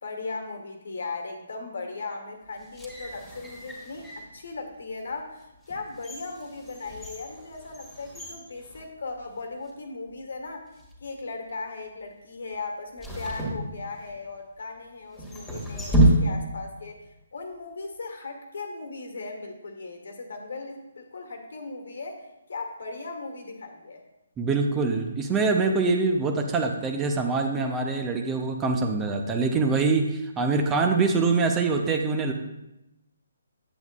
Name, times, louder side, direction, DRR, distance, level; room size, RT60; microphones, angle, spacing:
voice 1, 0.0-24.0, left 3 dB, 65° left, 4 dB, 1.4 m, -38 dB
sound 1, 2.6-4.3 4.9-5.1 5.6-9.4 9.7-9.8 10.6-11.0 13.0-14.3 15.1-16.7 17.0-17.1, right 1 dB, 5° left, 1.9 m, -28 dB
voice 2, 24.4-32.3, right 4 dB, 15° right, 4 dB, 0.6 m, -24 dB
8.8 x 8.0 x 2.4 m, 0.91 s
figure-of-eight pair, 140°, 0 cm